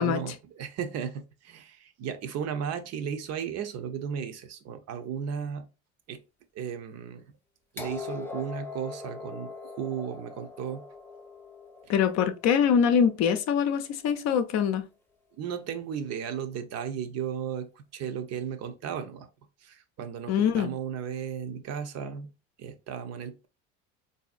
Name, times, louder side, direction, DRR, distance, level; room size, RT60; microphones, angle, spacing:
voice 1, 0.0-5.7 6.1-6.2 6.5-7.2 7.7-10.9 15.4-19.3 19.6-22.3 22.6-23.5, right 8 dB, 50° right, 0.6 m, -35 dB
sound 1, 7.8-13.6 14.7-14.8, left 3 dB, 5° left, 0.5 m, -42 dB
voice 2, 11.9-14.8 20.3-20.7, left 7 dB, 50° left, 0.6 m, -24 dB
3.7 x 2.7 x 2.4 m
supercardioid pair, 90°, 34 cm